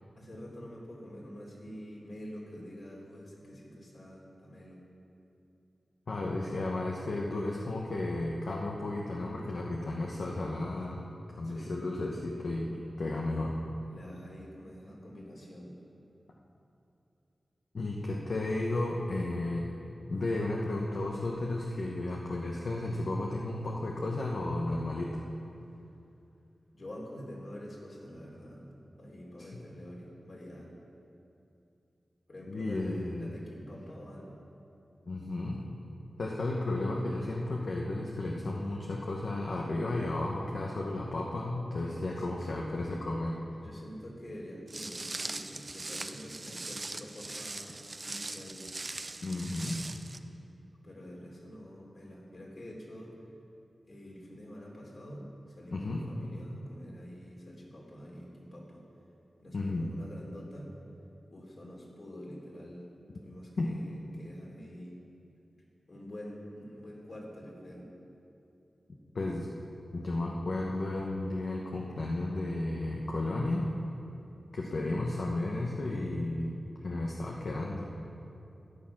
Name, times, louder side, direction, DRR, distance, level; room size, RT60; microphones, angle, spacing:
voice 1, 0.2-4.8 11.4-11.8 13.9-15.8 26.7-28.7 29.0-30.7 32.3-34.3 41.7-42.7 43.6-48.7 50.8-53.2 53.9-58.8 59.4-60.7 61.3-62.8 63.2-65.0 65.9-67.9 74.7-74.9, equal, 55° left, -3 dB, 3.2 m, -46 dB
voice 2, 6.1-11.0 11.4-13.5 17.7-19.7 20.1-25.2 32.5-33.3 35.1-35.6 36.2-43.4 49.2-49.8 55.7-56.0 59.5-59.9 63.6-63.8 69.1-69.5 69.9-73.7 74.5-77.9, left 2 dB, 70° left, -2 dB, 1.2 m, -33 dB
Walk footsteps, 44.7-50.2, right 2 dB, 40° right, 0.6 m, -40 dB
13.5 x 9.9 x 5.9 m, 2.7 s
cardioid pair, 65°, 0 cm